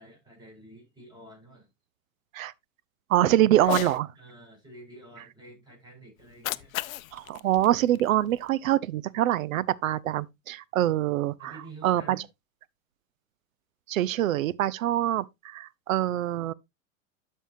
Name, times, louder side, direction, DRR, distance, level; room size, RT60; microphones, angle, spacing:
voice 1, 0.0-1.7 3.2-6.8 11.4-12.3, right 2 dB, 10° right, 6.4 m, -49 dB
voice 2, 3.1-4.1 7.1-11.5 11.8-12.2 13.9-16.5, right 13 dB, 80° right, 0.7 m, -25 dB
Cat, 3.6-4.0 6.2-8.6, left 15 dB, 85° left, 0.5 m, -35 dB
12.0 x 5.5 x 2.6 m
hypercardioid pair, 105°, 40 cm